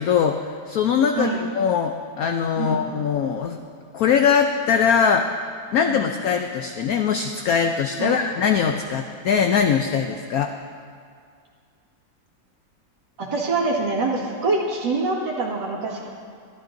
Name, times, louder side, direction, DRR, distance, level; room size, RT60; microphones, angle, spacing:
voice 1, 0.0-3.6 3.9-5.3 5.7-10.5, left 7 dB, 70° left, 5 dB, 0.8 m, -21 dB
voice 2, 13.2-16.1, right 3 dB, 70° right, -5 dB, 2.6 m, -25 dB
24.5 x 12.0 x 2.6 m, 2.2 s
omnidirectional pair, 2.1 m